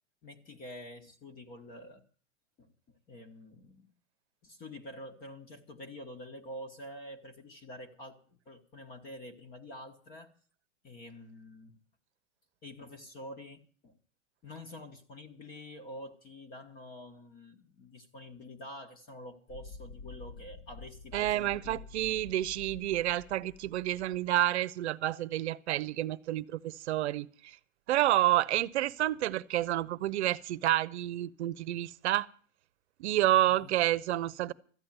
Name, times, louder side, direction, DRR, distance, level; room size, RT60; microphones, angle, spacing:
voice 1, 0.2-2.1 2.6-3.9 4.4-10.3 10.8-11.8 12.6-14.0 14.4-21.8 33.5-33.7, left 1 dB, 25° left, 1.4 m, -47 dB
sound 1, 19.5-24.5, left 3 dB, 55° left, 1.9 m, -49 dB
voice 2, 21.1-27.6 27.9-32.3 33.0-34.5, right 14 dB, 60° right, 0.9 m, -29 dB
13.5 x 8.8 x 9.0 m
hypercardioid pair, 140°, 39 cm